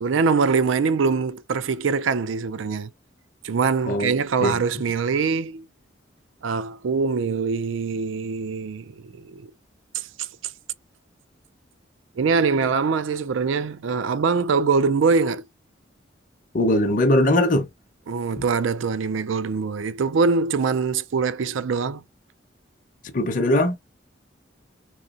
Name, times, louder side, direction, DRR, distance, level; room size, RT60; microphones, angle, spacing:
voice 1, 0.0-2.9 3.4-5.6 6.4-9.5 9.9-10.3 12.2-15.4 18.1-22.0, right 5 dB, 85° right, 0.4 m, -23 dB
voice 2, 16.5-17.7 23.1-23.8, left 1 dB, 45° left, 0.7 m, -20 dB
3.7 x 3.1 x 2.4 m
head